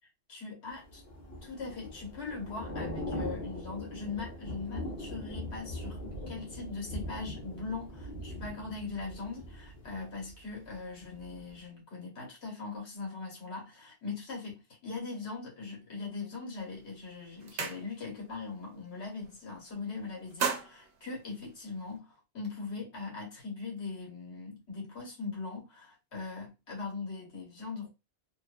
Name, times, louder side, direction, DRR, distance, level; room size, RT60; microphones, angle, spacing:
voice 1, 0.3-1.0 1.4-27.9, left 4 dB, 90° left, 1.4 m, -40 dB
Thunder / Rain, 0.8-10.8 11.1-11.4, left 1 dB, 65° left, 1.1 m, -41 dB
sound 1, 16.6-16.8 17.1-18.3 18.6-18.9 19.2-19.8 20.1-22.0, right 6 dB, 70° right, 0.8 m, -37 dB
2.8 x 2.2 x 2.5 m
omnidirectional pair, 1.1 m